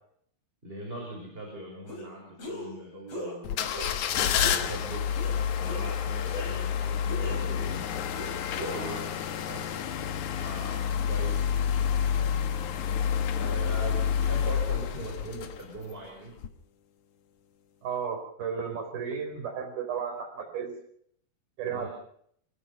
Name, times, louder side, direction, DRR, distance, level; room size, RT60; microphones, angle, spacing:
voice 1, 0.6-3.7 4.5-5.0 5.6-7.9 8.5-9.1 10.3-11.7 13.3-16.3 21.7-21.9, right 1 dB, 15° right, -1 dB, 5.7 m, -40 dB
sound 1, 1.9-2.1 2.4-2.8 3.1-3.3 3.7-4.1 4.4-4.7 5.1-5.3 5.6-6.8 7.1-7.7 8.1-9.1, equal, 40° left, 6.3 m, -39 dB
sound 2, 3.4-15.9 16.4-16.5, left 8 dB, 60° left, 2.2 m, -29 dB
voice 2, 17.8-20.8 21.6-21.9, right 7 dB, 65° right, 5 dB, 5.7 m, -34 dB
27.0 x 18.0 x 5.7 m, 0.67 s
omnidirectional pair, 4.6 m